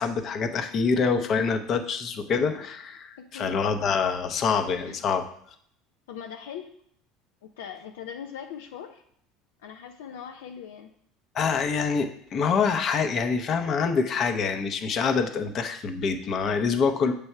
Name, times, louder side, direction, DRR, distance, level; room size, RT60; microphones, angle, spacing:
voice 1, 0.0-5.2 11.3-17.1, left 5 dB, 45° left, 6 dB, 0.7 m, -26 dB
voice 2, 3.2-3.6 4.8-5.0 6.1-6.7 7.4-9.0 9.6-10.9, left 8 dB, 80° left, 4 dB, 0.4 m, -40 dB
6.9 x 3.4 x 5.5 m, 0.67 s
hypercardioid pair, 80°, 0 cm